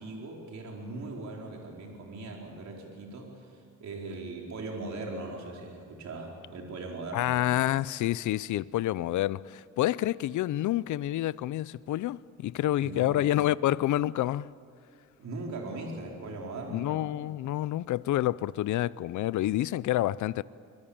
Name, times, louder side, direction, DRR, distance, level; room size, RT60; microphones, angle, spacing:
voice 1, 0.0-7.3 12.8-13.2 15.2-16.9, right 2 dB, 60° right, 4.4 m, -39 dB
voice 2, 7.1-14.5 16.7-20.4, left 14 dB, 70° left, 0.5 m, -28 dB
25.0 x 21.0 x 8.8 m
cardioid pair, 150°, 31 cm